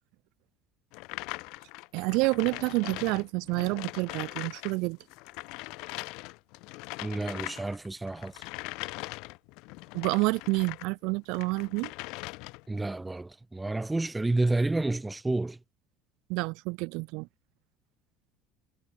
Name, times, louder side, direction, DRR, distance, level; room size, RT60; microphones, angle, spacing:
sound 1, 0.9-10.9 11.3-12.8, left 25 dB, 70° left, 1.0 m, -41 dB
voice 1, 1.9-5.0 9.9-11.9 16.3-17.3, right 27 dB, 70° right, 1.0 m, -28 dB
voice 2, 7.0-8.4 12.7-15.6, right 2 dB, 10° right, 1.5 m, -30 dB
cardioid pair, 145°, 0 cm